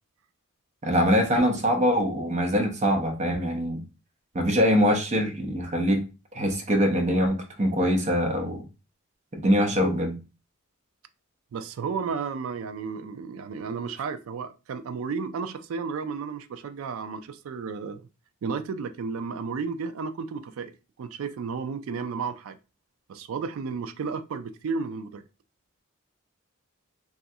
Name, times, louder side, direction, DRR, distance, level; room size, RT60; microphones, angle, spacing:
voice 1, 0.8-3.8 4.3-6.0 6.3-8.6 9.3-10.2, equal, 35° right, 0.6 m, -23 dB
voice 2, 11.5-18.1 18.4-22.6 23.1-25.2, right 5 dB, 70° right, 0.3 m, -33 dB
3.0 x 2.4 x 2.6 m
head